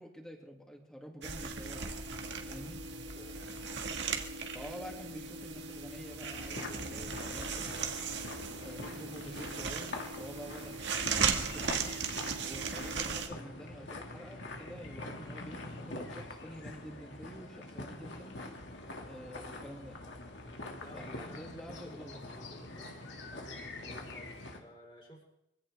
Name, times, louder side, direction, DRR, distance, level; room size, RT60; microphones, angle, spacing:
voice 1, 0.0-2.0 2.5-2.8 4.5-7.7 8.5-10.8 11.2-12.0 12.4-18.4 19.1-20.0 20.9-22.2, equal, 5° left, 0 dB, 2.7 m, -48 dB
sound 1, 1.2-13.3, right 5 dB, 70° right, 1.9 m, -37 dB
voice 2, 3.1-3.5 20.8-22.9 23.3-25.2, equal, 30° left, -2 dB, 4.6 m, -54 dB
sound 2, 6.3-24.6, left 2 dB, 70° left, 2.5 m, -45 dB
24.0 x 16.5 x 3.6 m, 0.84 s
head